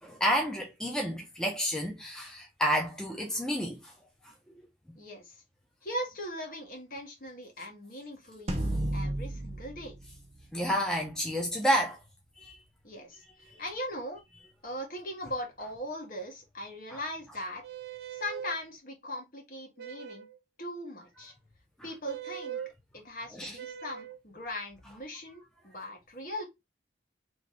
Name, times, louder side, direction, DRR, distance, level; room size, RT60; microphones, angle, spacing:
voice 1, 0.0-3.9 10.5-12.0 12.4-12.6 13.5-13.6 16.9-17.0 23.4-23.5, equal, 5° left, 0.7 m, -30 dB
voice 2, 4.9-5.3 5.8-8.7 8.9-10.0 12.8-13.2 13.6-14.2 14.6-17.6 18.1-20.3 20.6-21.3 21.8-22.6 22.9-26.4, left 1 dB, 50° left, 1.4 m, -39 dB
sound 1, 8.5-11.0, right 1 dB, 35° right, 0.8 m, -33 dB
sound 2, 17.6-18.6 19.8-20.4 22.1-22.7 23.6-24.2, right 9 dB, 60° right, 0.4 m, -41 dB
3.2 x 3.1 x 4.0 m
head